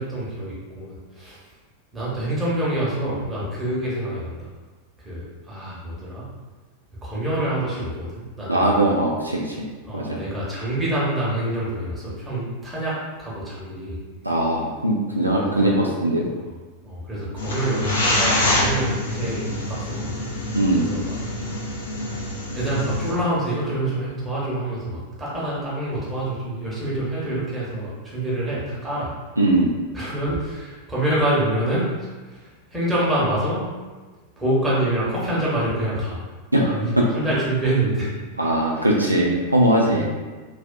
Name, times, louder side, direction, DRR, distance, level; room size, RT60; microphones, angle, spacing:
voice 1, 0.0-1.4 1.9-4.5 5.0-6.3 7.0-8.7 9.8-14.0 15.3-15.8 16.8-20.2 20.8-21.2 22.5-29.1 29.9-31.9 32.2-33.6 34.4-36.2 36.7-38.1 38.7-38.9 39.9-40.1, right 1 dB, 10° right, -8 dB, 1.0 m, -26 dB
voice 2, 8.5-9.7 9.9-10.2 14.2-16.3 20.6-20.9 29.4-29.7 36.5-36.8 38.4-40.1, right 1 dB, 85° right, -2 dB, 0.3 m, -20 dB
sound 1, 17.4-23.1, left 1 dB, 65° left, 0.5 m, -26 dB
2.5 x 2.3 x 2.2 m, 1.3 s
figure-of-eight pair, 90°, 0 cm